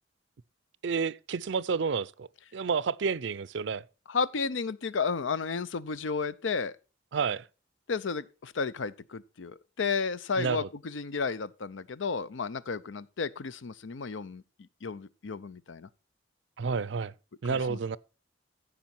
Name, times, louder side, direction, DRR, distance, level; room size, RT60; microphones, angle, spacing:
voice 1, 0.8-3.8 7.1-7.4 10.4-10.7 16.6-17.1 17.4-18.0, right 5 dB, 70° right, 0.5 m, -30 dB
voice 2, 4.1-6.8 7.9-14.4 14.8-15.9 17.4-17.8, left 5 dB, 80° left, 0.6 m, -33 dB
15.0 x 5.0 x 4.4 m
head